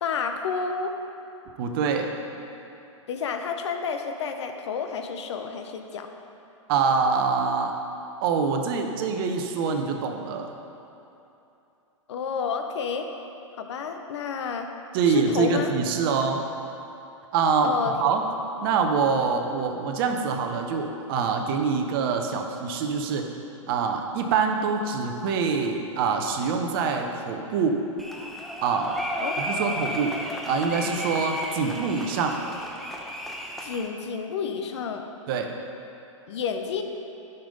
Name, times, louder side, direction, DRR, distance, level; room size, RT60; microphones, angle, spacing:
voice 1, 0.0-0.9 3.1-6.1 12.1-13.1 13.6-14.7 15.1-15.7 17.6-17.9 29.2-29.5 33.6-35.0 36.3-36.8, left 6 dB, 55° left, 5 dB, 0.8 m, -30 dB
voice 2, 1.6-2.1 6.7-7.7 8.2-10.5 14.9-16.4 17.3-17.7 18.0-18.2 18.6-23.3 23.7-27.8 28.6-29.0 29.4-32.4 35.3-35.5, right 5 dB, 45° right, 4 dB, 0.9 m, -25 dB
sound 1, 28.0-33.9, equal, ahead, 0.7 m, -33 dB
10.5 x 5.7 x 5.3 m, 2.8 s
figure-of-eight pair, 110°, 17 cm